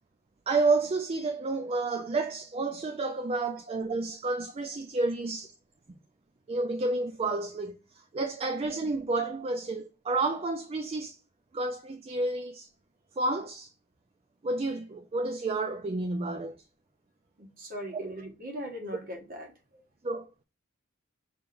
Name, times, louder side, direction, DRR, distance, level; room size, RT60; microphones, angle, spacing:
voice 1, 0.5-5.5 6.5-11.2 11.5-12.7 13.2-13.7 14.4-16.6 17.9-18.1 20.0-20.4, right 3 dB, 30° right, 0.4 m, -30 dB
voice 2, 17.4-19.8, equal, 45° right, 1.4 m, -40 dB
5.6 x 3.6 x 2.5 m
head